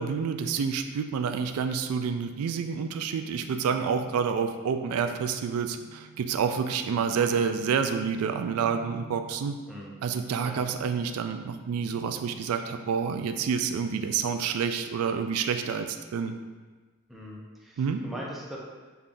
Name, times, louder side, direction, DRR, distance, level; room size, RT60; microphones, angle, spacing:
voice 1, 0.0-9.6 10.0-16.4 17.8-18.0, right 6 dB, 90° right, 7 dB, 0.3 m, -28 dB
sound 1, 1.8-13.1, right 6 dB, 65° left, 0.7 m, -51 dB
voice 2, 9.7-10.0 10.4-10.6 17.1-18.6, equal, ahead, -4 dB, 0.6 m, -41 dB
5.5 x 3.5 x 2.5 m, 1.3 s
head